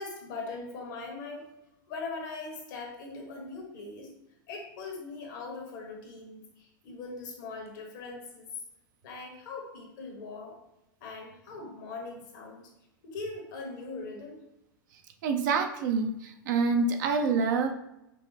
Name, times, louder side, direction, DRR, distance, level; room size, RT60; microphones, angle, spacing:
voice 1, 0.0-1.5 1.9-4.1 4.5-8.5 9.0-10.6 11.0-12.7 13.0-14.4, left 3 dB, 65° left, 1 dB, 1.2 m, -41 dB
voice 2, 15.2-17.7, right 4 dB, 60° right, 5 dB, 0.5 m, -26 dB
5.2 x 2.1 x 3.2 m, 0.89 s
hypercardioid pair, 100°, 11 cm